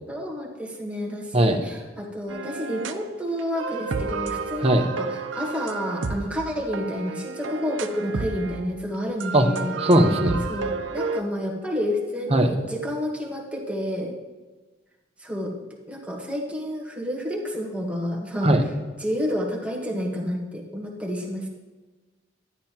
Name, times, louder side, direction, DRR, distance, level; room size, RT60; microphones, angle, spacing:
voice 1, 0.1-9.8 10.5-14.1 15.2-15.5 15.9-18.6 19.0-21.5, equal, 5° right, -1 dB, 1.2 m, -30 dB
sound 1, 2.3-3.1 3.4-8.7 9.2-11.2, right 4 dB, 80° right, 0.6 m, -31 dB
voice 2, 9.8-10.4 12.3-12.5 18.4-18.6, right 1 dB, 30° right, 4 dB, 0.9 m, -18 dB
12.5 x 10.5 x 2.9 m, 1.3 s
head